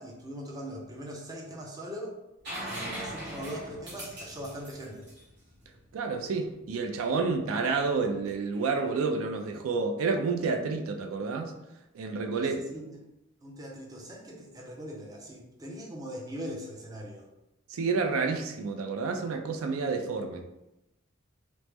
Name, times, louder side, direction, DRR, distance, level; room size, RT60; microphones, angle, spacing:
voice 1, 0.0-2.2 2.6-5.1 12.3-12.9 13.4-17.3, equal, 20° right, -2 dB, 0.4 m, -41 dB
sound 1, 2.4-6.1 8.0-8.1, equal, 55° right, 1.4 m, -40 dB
voice 2, 5.9-11.5 11.9-12.6 17.7-20.4, right 4 dB, 85° right, 4 dB, 0.4 m, -29 dB
3.0 x 2.0 x 3.3 m, 0.91 s
head